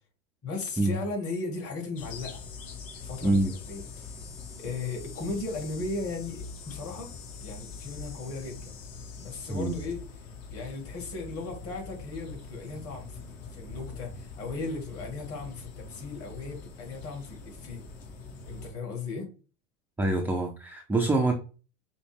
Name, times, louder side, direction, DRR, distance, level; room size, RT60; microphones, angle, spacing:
voice 1, 0.4-2.4 2.9-4.2 4.6-7.1 7.4-8.8 9.2-10.0 10.5-17.8 18.5-19.3, left 3 dB, 35° left, 2.1 m, -37 dB
sound 1, 1.9-18.7, left 5 dB, 55° left, 1.5 m, -43 dB
voice 2, 20.0-21.3, right 2 dB, 5° right, 0.3 m, -25 dB
5.2 x 2.1 x 3.4 m
hypercardioid pair, 105°, 38 cm